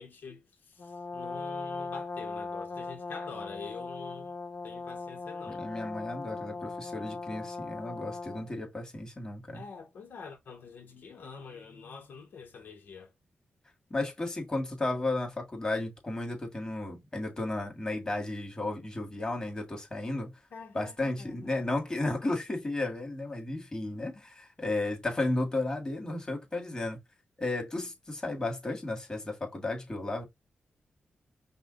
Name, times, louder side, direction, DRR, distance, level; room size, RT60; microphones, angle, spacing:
voice 1, 0.0-4.3 4.6-5.6 9.5-13.1 20.5-21.6, left 5 dB, 80° left, 1.2 m, -46 dB
Brass instrument, 0.8-8.5, left 4 dB, 40° left, 0.8 m, -39 dB
voice 2, 5.5-9.6 13.9-20.3 20.7-27.0 27.4-30.2, left 2 dB, 25° left, 1.9 m, -33 dB
5.5 x 2.4 x 3.8 m
wide cardioid pair, 105°, 3 cm